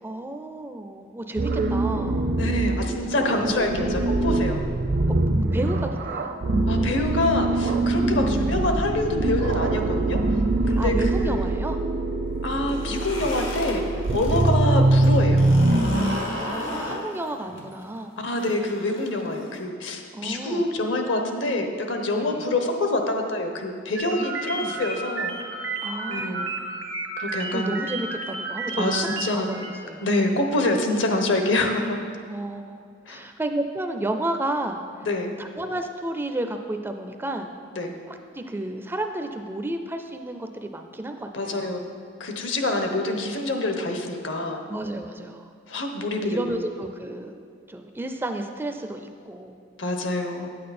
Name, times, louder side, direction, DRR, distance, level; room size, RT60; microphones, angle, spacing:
voice 1, 0.0-2.4 5.5-6.3 8.2-8.3 10.6-11.8 14.3-14.5 16.1-18.1 20.1-20.6 22.2-22.4 24.1-24.8 25.8-26.5 27.5-30.4 32.3-35.1 35.4-37.5 38.1-41.7 44.7-45.5 46.2-49.6, right 1 dB, 10° right, 6 dB, 0.4 m, -32 dB
sound 1, 1.4-17.0, right 2 dB, 55° right, 0.6 m, -23 dB
voice 2, 2.4-4.6 6.7-10.2 10.7-11.4 12.4-13.8 14.1-15.5 18.2-25.4 26.1-26.5 27.2-27.8 28.8-29.5 30.0-32.0 33.1-33.2 35.0-35.3 37.7-38.0 41.3-41.8 42.2-44.6 45.7-46.6 49.8-50.5, left 2 dB, 70° left, 4 dB, 1.0 m, -26 dB
sound 2, 12.6-14.5 14.8-19.6, left 1 dB, 90° left, 1.7 m, -34 dB
sound 3, 24.0-29.7, right 3 dB, 80° right, 1.2 m, -32 dB
8.8 x 8.5 x 4.2 m, 2.2 s
head